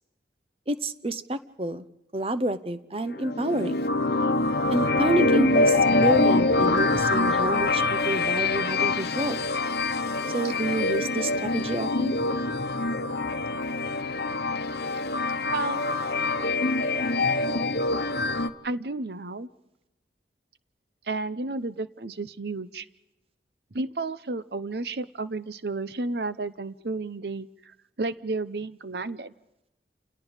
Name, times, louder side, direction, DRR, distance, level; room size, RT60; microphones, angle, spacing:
voice 1, 0.7-1.9 2.1-3.9 4.7-9.5 10.3-12.1, right 1 dB, 30° right, 12 dB, 0.8 m, -29 dB
sound 1, 3.1-18.5, left 3 dB, 65° left, 1.0 m, -25 dB
voice 2, 15.5-15.8 18.6-19.5 21.1-22.9 23.7-29.3, right 3 dB, 65° right, 14 dB, 0.8 m, -32 dB
29.0 x 18.0 x 5.1 m, 0.96 s
head